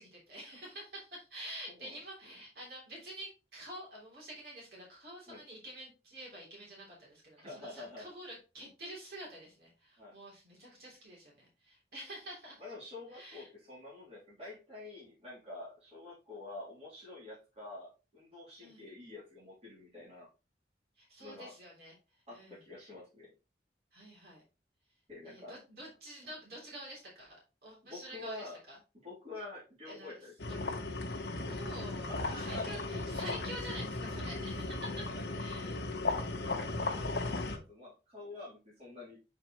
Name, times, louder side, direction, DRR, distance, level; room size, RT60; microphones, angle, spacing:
voice 1, 0.0-12.6 13.1-13.5 18.6-18.9 21.0-21.9 22.3-22.6 23.9-24.4 25.2-28.8 29.8-30.1 30.5-30.6 31.4-35.1 35.4-35.8, right 1 dB, 60° right, -4 dB, 3.2 m, -48 dB
voice 2, 1.7-2.4 5.3-5.4 7.4-8.1 10.0-10.2 12.6-20.3 21.2-21.5 22.3-23.3 25.1-25.6 27.9-28.6 29.0-30.6 32.0-33.0 34.8-35.2 35.5-39.2, left 2 dB, 35° right, -7 dB, 3.2 m, -48 dB
sound 1, 30.4-37.6, left 2 dB, 75° left, 1.0 m, -36 dB
7.6 x 4.6 x 3.0 m, 0.29 s
head